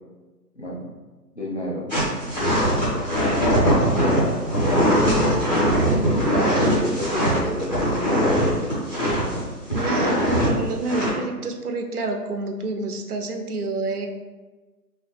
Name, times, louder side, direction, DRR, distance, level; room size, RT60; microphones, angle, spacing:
voice 1, 0.6-0.9 1.4-1.9 5.9-8.5, equal, 45° left, -4 dB, 0.6 m, -29 dB
sound 1, 1.9-9.4 9.7-10.5 10.8-11.1, equal, 25° left, 1.3 m, -21 dB
voice 2, 9.7-14.1, right 3 dB, 65° right, 4 dB, 0.5 m, -28 dB
2.7 x 2.7 x 3.3 m, 1.2 s
figure-of-eight pair, 180°, 48 cm